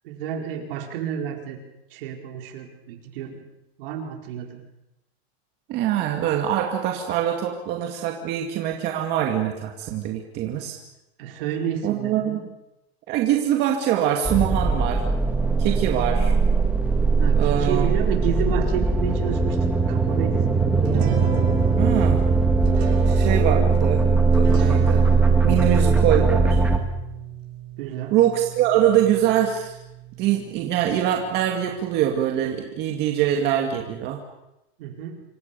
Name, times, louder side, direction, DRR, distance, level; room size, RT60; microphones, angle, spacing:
voice 1, 0.0-1.6 1.9-3.4 3.8-4.6 11.2-12.4 17.1-19.6 19.9-21.2 27.8-28.1 34.8-35.2, right 8 dB, 60° right, 3 dB, 4.8 m, -30 dB
voice 2, 5.7-10.8 11.8-12.5 13.1-15.0 15.6-16.3 17.4-17.9 21.8-22.2 23.1-24.0 24.4-25.0 25.4-26.6 28.1-29.8 30.2-34.2, right 10 dB, 35° right, 2 dB, 2.3 m, -23 dB
sound 1, 14.2-26.8, right 4 dB, 5° right, 1.8 m, -20 dB
sound 2, 20.8-32.3, right 9 dB, 80° right, 6.4 m, -36 dB
27.0 x 25.0 x 7.0 m, 0.91 s
supercardioid pair, 170°, 31 cm